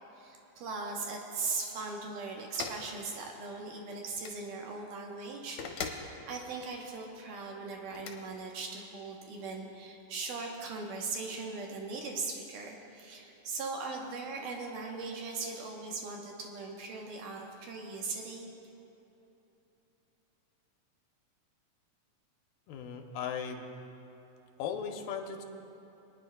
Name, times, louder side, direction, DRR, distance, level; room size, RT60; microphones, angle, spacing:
voice 1, 0.1-18.5, right 4 dB, 70° right, 0 dB, 2.3 m, -39 dB
sound 1, 2.6-2.8 4.1-4.4 5.6-6.1 7.9-8.2, left 6 dB, 70° left, 1.7 m, -39 dB
voice 2, 22.7-23.7 24.6-25.4, left 7 dB, 90° left, 4 dB, 2.5 m, -37 dB
25.5 x 9.9 x 2.2 m, 3.0 s
omnidirectional pair, 4.1 m